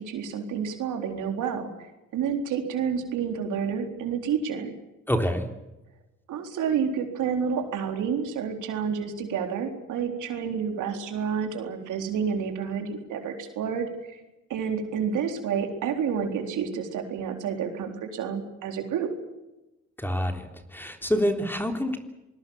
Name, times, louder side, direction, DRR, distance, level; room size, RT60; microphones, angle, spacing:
voice 1, 0.0-4.7 6.3-14.2 14.5-19.1, right 7 dB, 80° right, 4 dB, 3.9 m, -29 dB
voice 2, 5.1-5.5 20.0-22.0, equal, 5° left, 5 dB, 3.5 m, -27 dB
26.0 x 20.0 x 7.2 m, 0.98 s
cardioid pair, 90°, 30 cm